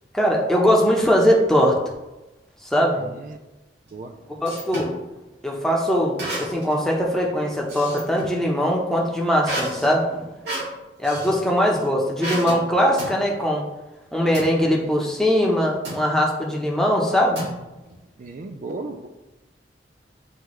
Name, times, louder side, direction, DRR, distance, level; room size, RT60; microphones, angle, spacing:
voice 1, 0.1-1.8 2.6-3.0 4.4-4.9 5.4-10.3 11.0-13.6 14.1-17.4, equal, 5° left, -2 dB, 0.9 m, -21 dB
sound 1, 3.9-5.0 6.2-6.8 7.1-8.4 9.4-11.4 12.2-12.6 13.0-13.2 14.3-14.5 15.8-16.1 17.3-17.9, right 1 dB, 70° right, 2.1 m, -31 dB
voice 2, 18.2-19.1, right 3 dB, 50° right, 5 dB, 0.4 m, -35 dB
8.9 x 3.4 x 3.2 m, 1.0 s
head